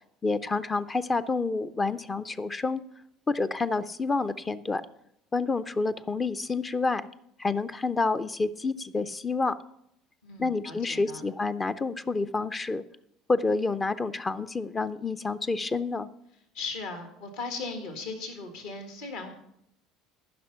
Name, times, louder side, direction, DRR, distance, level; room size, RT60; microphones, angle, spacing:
voice 1, 0.2-2.8 3.3-4.8 5.3-7.1 7.4-9.6 10.4-12.8 13.3-16.1, left 3 dB, 25° left, 15 dB, 0.5 m, -28 dB
voice 2, 10.2-11.2 16.5-19.4, left 3 dB, 60° left, 6 dB, 1.7 m, -37 dB
14.5 x 6.0 x 5.6 m, 0.76 s
figure-of-eight pair, 65°, 0 cm